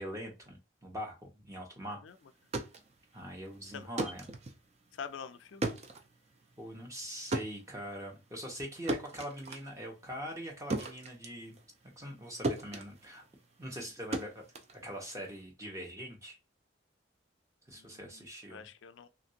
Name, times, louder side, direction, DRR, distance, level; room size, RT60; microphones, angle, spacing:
voice 1, 0.0-2.0 3.1-4.2 6.6-11.6 12.0-13.2 13.6-14.4 14.8-16.4 17.7-18.7, equal, 15° right, 0.8 m, -42 dB
sound 1, 2.3-12.2 12.4-15.4, right 2 dB, 35° right, 0.4 m, -39 dB
voice 2, 4.9-5.7 17.7-19.1, left 6 dB, 85° left, 0.4 m, -46 dB
3.1 x 2.5 x 2.7 m
head